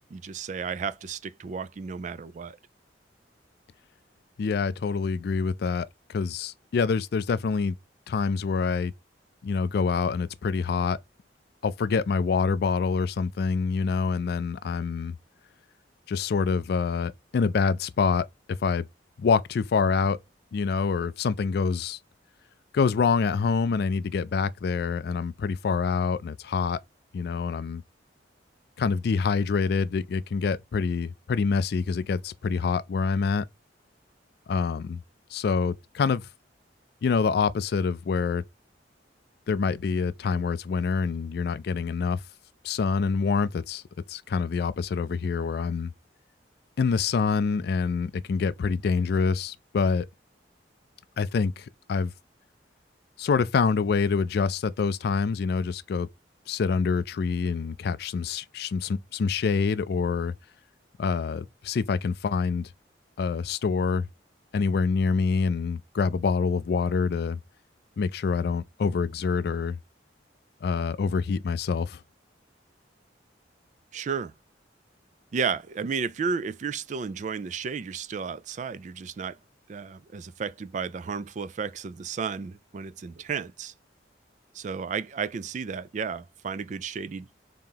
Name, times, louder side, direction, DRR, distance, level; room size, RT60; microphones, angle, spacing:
voice 1, 0.0-2.6 73.9-74.3 75.3-79.4 79.7-83.7 84.5-87.3, right 6 dB, 40° right, 0.3 m, -33 dB
voice 2, 4.4-7.8 8.1-8.9 9.4-11.0 11.6-15.2 16.1-18.3 18.6-18.9 19.2-20.2 20.5-22.0 22.7-26.8 27.1-27.8 28.8-33.4 34.5-35.0 35.3-36.2 37.0-38.4 39.5-42.2 42.6-43.8 44.1-45.9 46.8-50.1 51.2-52.1 53.2-56.1 56.5-60.3 61.0-62.7 63.2-64.1 64.5-67.4 68.0-69.8 70.6-72.0, left 5 dB, 60° left, 0.3 m, -26 dB
3.8 x 2.9 x 3.6 m
head